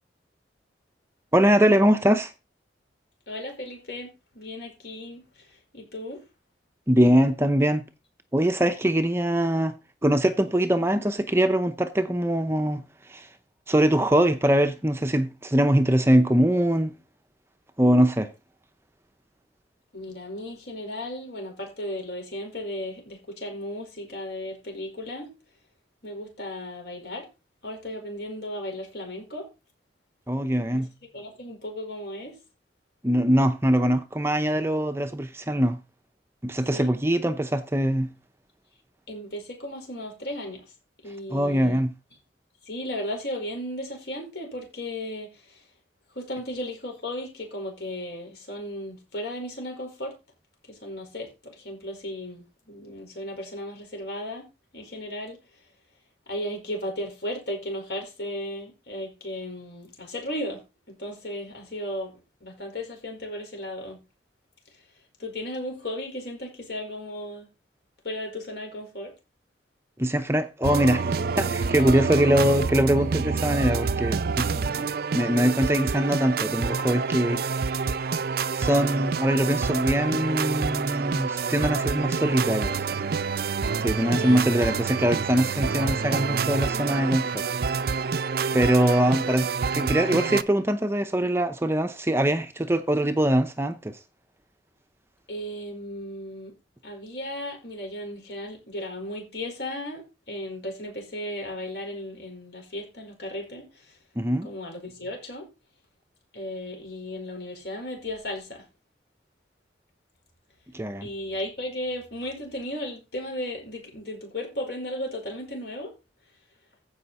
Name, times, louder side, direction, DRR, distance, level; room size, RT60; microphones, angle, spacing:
voice 1, 1.3-2.3 6.9-7.9 8.3-9.7 10.0-13.3 13.7-16.9 17.8-18.3 30.3-30.9 33.0-35.8 36.4-38.1 41.3-41.9 70.0-74.5 75.1-77.4 78.5-82.9 83.8-87.5 88.5-94.0 104.2-104.5 110.7-111.1, right 1 dB, 15° right, 0.7 m, -22 dB
voice 2, 3.3-6.2 19.9-25.3 26.0-27.3 27.6-29.5 30.7-30.8 31.1-32.4 36.7-36.9 39.1-40.6 41.0-41.9 42.6-45.6 46.1-50.1 50.7-54.5 54.7-55.4 56.3-60.6 60.9-62.1 62.4-64.0 65.2-67.5 68.0-69.1 74.5-74.9 84.1-84.4 89.0-89.2 95.3-96.5 96.8-104.0 104.4-105.5 106.3-108.6 111.0-115.9, left 1 dB, 60° left, 4.9 m, -35 dB
sound 1, 70.6-90.4, right 5 dB, 55° right, 0.5 m, -27 dB
15.0 x 5.6 x 4.2 m
head